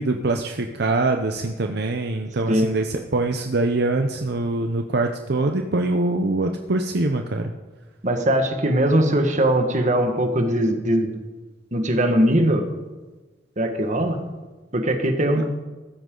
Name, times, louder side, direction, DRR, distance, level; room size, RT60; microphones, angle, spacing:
voice 1, 0.0-7.5 15.4-15.5, right 2 dB, 65° right, 4 dB, 0.8 m, -24 dB
voice 2, 8.0-11.1 11.7-12.6 13.6-14.2 14.7-15.4, right 1 dB, 45° right, 5 dB, 1.7 m, -20 dB
15.0 x 13.5 x 3.9 m, 1.2 s
head